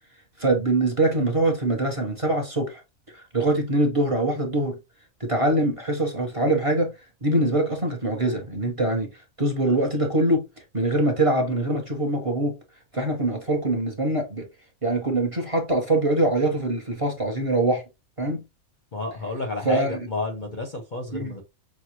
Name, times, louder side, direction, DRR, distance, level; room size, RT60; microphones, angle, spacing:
voice 1, 0.4-2.8 3.1-4.8 5.2-6.9 7.2-9.1 9.4-10.4 10.7-12.5 12.9-14.5 14.8-17.8 18.2-18.4 19.6-20.0 21.1-21.3, right 2 dB, 25° right, 1.0 m, -23 dB
voice 2, 18.9-21.4, left 3 dB, 45° left, 0.7 m, -31 dB
6.1 x 2.3 x 2.9 m
omnidirectional pair, 1.4 m